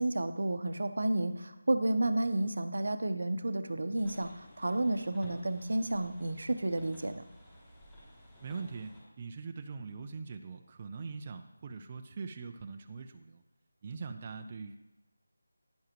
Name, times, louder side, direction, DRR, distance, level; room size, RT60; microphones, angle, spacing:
voice 1, 0.0-7.2, right 2 dB, 70° right, 10 dB, 0.8 m, -31 dB
sound 1, 3.9-9.0, equal, 10° left, 4.0 m, -55 dB
voice 2, 8.4-13.4 13.8-14.8, right 4 dB, 30° right, 6 dB, 0.5 m, -42 dB
11.0 x 10.5 x 3.0 m, 0.99 s
figure-of-eight pair, 170°, 0 cm